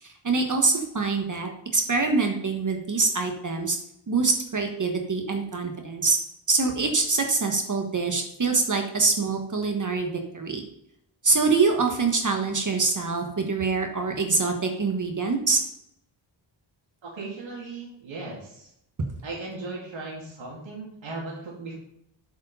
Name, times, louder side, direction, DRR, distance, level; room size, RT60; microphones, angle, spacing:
voice 1, 0.0-3.8 4.1-6.2 6.5-10.6 11.2-15.6, right 4 dB, 40° right, 4 dB, 1.3 m, -25 dB
voice 2, 17.0-18.7 19.2-21.7, right 3 dB, 75° right, -3 dB, 2.5 m, -37 dB
8.1 x 5.1 x 5.5 m, 0.75 s
wide cardioid pair, 110°, 46 cm